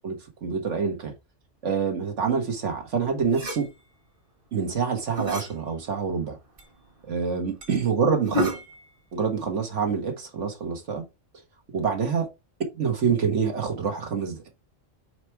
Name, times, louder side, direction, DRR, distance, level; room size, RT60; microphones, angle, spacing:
voice 1, 0.0-1.1 1.6-3.7 4.5-6.4 7.1-8.6 9.1-11.0 11.7-12.3 12.7-14.5, right 6 dB, 70° right, 1.7 m, -26 dB
sound 1, 3.2-3.7 5.0-5.5 6.1-6.2 6.6-6.7 7.0-7.1 7.6-7.8 8.2-8.9, left 1 dB, 45° right, 1.7 m, -31 dB
4.9 x 4.5 x 4.7 m
omnidirectional pair, 1.3 m